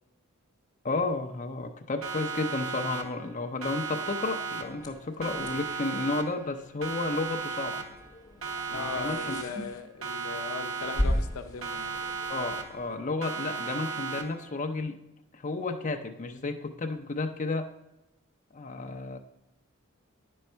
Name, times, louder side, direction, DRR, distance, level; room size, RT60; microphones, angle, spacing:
voice 1, 0.8-7.8 8.7-9.7 12.3-15.0 15.3-17.7 18.5-19.2, left 3 dB, 35° left, 5 dB, 0.6 m, -32 dB
Siren, 2.0-3.3 3.6-4.9 5.2-6.5 6.8-8.1 8.4-9.7 10.0-11.3 11.6-12.9 13.2-14.5, right 5 dB, 80° right, 0.9 m, -36 dB
sound 1, 4.6-13.0, equal, 20° left, 0.9 m, -37 dB
voice 2, 8.7-12.0 13.4-13.5, left 5 dB, 85° left, 9 dB, 0.5 m, -38 dB
9.4 x 5.3 x 4.5 m, 0.89 s
head